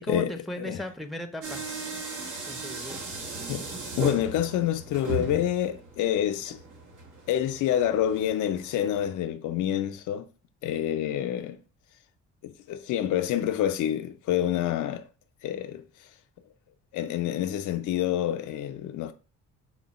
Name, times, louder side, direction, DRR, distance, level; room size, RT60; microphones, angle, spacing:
voice 1, 0.0-1.7 2.5-3.0, equal, ahead, 0.5 m, -37 dB
sound 1, 1.4-9.2, right 2 dB, 80° right, 1.3 m, -38 dB
voice 2, 4.0-6.6 7.3-10.3 10.6-11.6 12.4-15.0 15.4-15.8 16.9-19.1, left 11 dB, 80° left, 0.5 m, -27 dB
4.3 x 2.2 x 4.0 m
cardioid pair, 90°, 30 cm